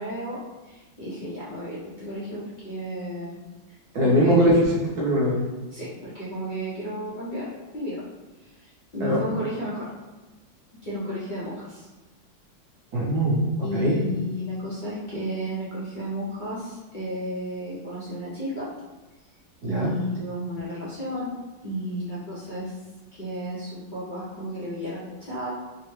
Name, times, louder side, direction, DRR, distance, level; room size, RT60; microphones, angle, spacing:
voice 1, 0.0-3.4 4.0-4.4 5.7-8.0 8.4-9.9 10.8-11.9 13.6-18.7 19.6-21.3 21.6-22.8 23.1-25.5, equal, 75° left, -10 dB, 0.4 m, -33 dB
voice 2, 3.9-4.5 5.0-5.4 9.0-9.2 12.9-14.0 19.6-19.9, equal, 60° right, -6 dB, 1.4 m, -21 dB
3.7 x 2.1 x 3.1 m, 1.1 s
omnidirectional pair, 2.0 m